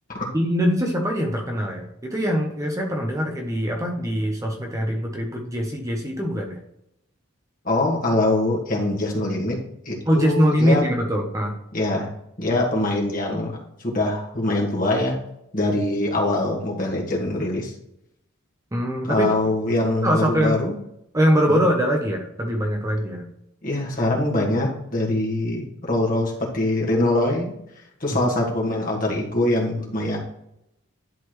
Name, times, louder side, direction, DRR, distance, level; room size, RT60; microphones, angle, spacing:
voice 1, 0.3-6.6 10.1-11.6 18.7-19.3 20.0-20.6 21.1-23.2 28.1-28.2, equal, 15° right, 1 dB, 0.9 m, -22 dB
voice 2, 7.6-9.6 9.8-10.8 11.7-12.1 12.4-13.5 13.8-15.2 15.5-17.7 19.0-20.8 21.5-21.6 23.6-27.5 28.0-30.2, left 2 dB, 40° left, -2 dB, 1.7 m, -23 dB
11.0 x 4.2 x 3.2 m, 0.80 s
head